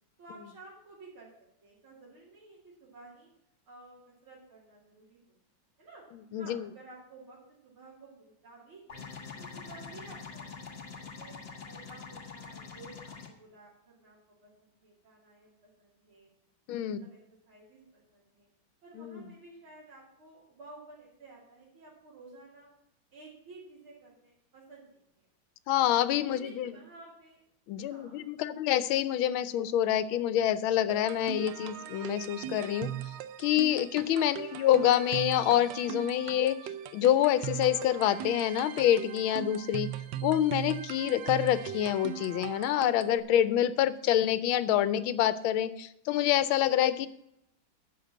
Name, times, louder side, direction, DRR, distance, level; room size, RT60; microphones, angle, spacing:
voice 1, 0.2-1.3 1.6-3.3 3.7-5.4 5.8-6.0 6.4-9.0 9.4-10.5 10.8-11.3 11.7-16.3 16.9-17.2 17.5-18.5 18.8-22.7 23.1-25.3 26.3-27.4 27.8-28.5 34.3-34.6, right 2 dB, 85° right, -5 dB, 3.4 m, -53 dB
voice 2, 6.3-6.6 16.7-17.1 19.0-19.2 25.7-26.7 27.7-32.9 33.4-36.6 36.9-39.9 40.2-47.1, left 11 dB, 80° left, 15 dB, 1.5 m, -27 dB
sound 1, 8.9-13.3, left 5 dB, 35° left, 1.3 m, -44 dB
sound 2, 30.9-43.2, right 11 dB, 70° right, 1.2 m, -39 dB
12.0 x 5.1 x 7.4 m, 0.79 s
omnidirectional pair, 2.2 m